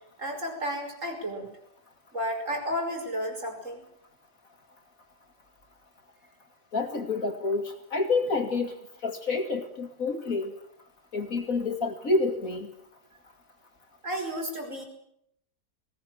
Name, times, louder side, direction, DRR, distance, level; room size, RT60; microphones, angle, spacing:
voice 1, 0.2-1.5 2.1-3.9 14.0-14.8, equal, 45° right, 3 dB, 5.9 m, -32 dB
voice 2, 6.7-8.8 9.0-10.5 11.1-12.7, left 3 dB, 55° left, 5 dB, 2.8 m, -28 dB
20.5 x 18.5 x 9.2 m, 0.73 s
omnidirectional pair, 1.8 m